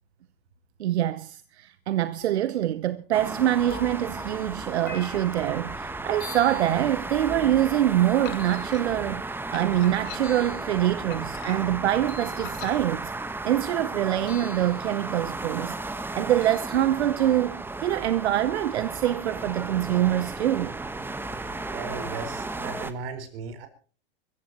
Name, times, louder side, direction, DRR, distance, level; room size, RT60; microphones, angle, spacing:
voice 1, 0.8-9.2 9.5-13.1 13.4-20.7, right 12 dB, 85° right, 0.8 m, -25 dB
sound 1, 2.2-2.7 3.7-4.4 4.9-5.6 6.2-6.9 8.4-8.9 10.2-10.8 12.1-12.6 14.3-14.9 16.4-16.9, left 6 dB, 25° left, 6.3 m, -45 dB
sound 2, 3.1-22.9, right 2 dB, 5° right, 1.1 m, -34 dB
sound 3, 8.2-8.8 9.5-10.5 11.1-11.8 12.3-12.8, left 14 dB, 55° left, 2.1 m, -43 dB
voice 2, 21.3-23.7, right 5 dB, 60° right, 4.7 m, -37 dB
24.5 x 15.0 x 2.9 m
hypercardioid pair, 120°, 32 cm